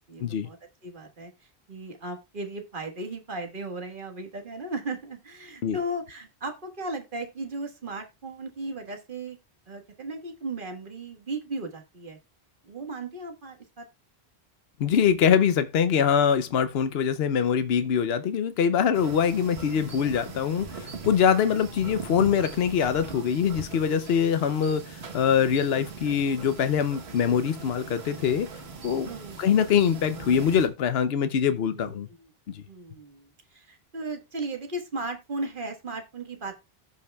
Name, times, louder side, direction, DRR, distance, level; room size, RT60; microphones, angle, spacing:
voice 1, 0.1-9.4 9.7-12.2 12.6-13.8 21.3-21.6 29.0-29.4 31.7-32.3 32.7-36.5, right 2 dB, 55° right, 1.6 m, -36 dB
voice 2, 14.8-28.5 28.8-29.1 29.4-32.1 32.5-32.6, left 7 dB, 80° left, 0.9 m, -23 dB
sound 1, 18.9-30.7, right 4 dB, 90° right, 1.4 m, -41 dB
16.0 x 5.7 x 2.3 m
omnidirectional pair, 1.0 m